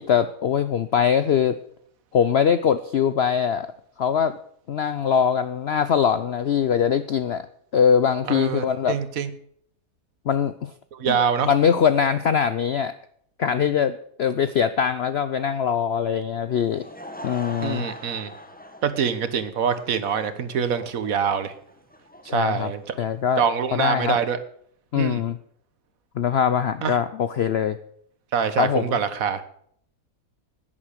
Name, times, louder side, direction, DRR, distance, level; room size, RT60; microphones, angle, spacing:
voice 1, 0.0-1.6 2.1-3.7 4.0-4.4 4.7-7.5 7.7-9.0 10.3-10.7 11.1-11.2 11.4-12.9 13.4-16.8 17.2-17.9 22.2-22.7 23.0-23.4 23.7-24.2 24.9-25.4 26.2-27.8 28.6-29.0, left 7 dB, 65° left, 13 dB, 0.6 m, -22 dB
voice 2, 8.3-9.3 10.9-11.5 17.6-18.3 18.8-21.5 22.3-22.9 23.4-24.4 24.9-25.2 26.8-27.0 28.3-29.4, right 7 dB, 60° right, 12 dB, 1.4 m, -25 dB
Laughter / Crowd, 16.5-23.4, left 1 dB, 5° left, 0.9 m, -42 dB
10.5 x 9.9 x 6.5 m, 0.65 s
omnidirectional pair, 1.7 m